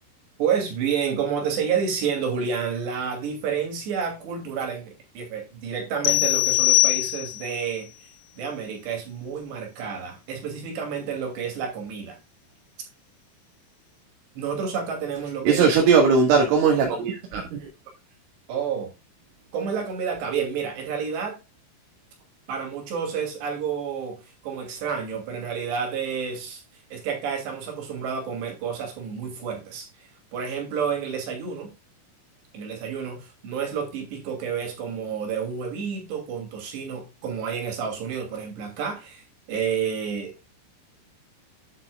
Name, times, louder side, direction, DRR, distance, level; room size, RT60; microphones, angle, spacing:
voice 1, 0.4-12.2 14.4-15.8 18.5-18.9 19.5-21.4 22.5-26.6 26.9-31.7 32.5-39.2 39.5-40.5, right 7 dB, 65° right, 4.8 m, -30 dB
sound 1, 6.0-7.6, left 24 dB, 85° left, 2.5 m, -21 dB
voice 2, 15.4-17.7, right 5 dB, 90° right, 4.2 m, -19 dB
9.7 x 7.8 x 2.3 m
omnidirectional pair, 5.4 m